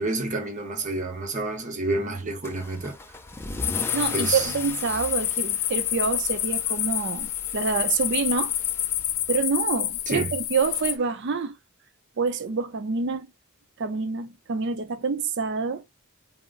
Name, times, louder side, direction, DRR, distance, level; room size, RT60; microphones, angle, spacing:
voice 1, 0.0-3.0 4.1-4.5 10.1-10.3, right 2 dB, 35° right, 0.8 m, -29 dB
Car / Engine starting / Accelerating revving vroom, 2.4-9.8, left 2 dB, 10° left, 0.3 m, -39 dB
sound 1, 3.6-11.0, left 12 dB, 80° left, 0.4 m, -28 dB
voice 2, 3.9-8.5 9.3-11.6 12.2-13.3 13.8-15.8, right 5 dB, 55° right, 0.5 m, -27 dB
3.7 x 2.0 x 2.4 m
head